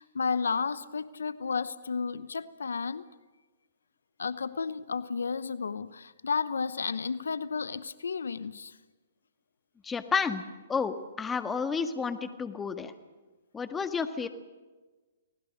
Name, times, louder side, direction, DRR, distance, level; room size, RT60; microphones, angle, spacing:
voice 1, 0.0-3.1 4.2-8.8, left 5 dB, 80° left, 0.8 m, -32 dB
voice 2, 9.8-10.4 10.7-12.9 13.5-14.3, left 5 dB, 15° left, 1.6 m, -31 dB
30.0 x 19.0 x 6.5 m
hypercardioid pair, 125°, 0 cm